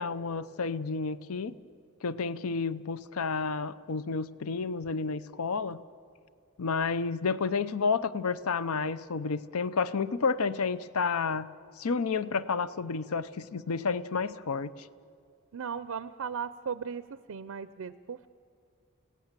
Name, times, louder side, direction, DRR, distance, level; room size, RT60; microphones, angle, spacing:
voice 1, 0.0-1.5 2.0-5.8 6.6-11.5 11.8-14.7, left 4 dB, 70° left, 16 dB, 0.6 m, -30 dB
voice 2, 15.5-18.3, right 6 dB, 65° right, 14 dB, 0.5 m, -37 dB
28.5 x 17.5 x 7.4 m, 2.4 s
head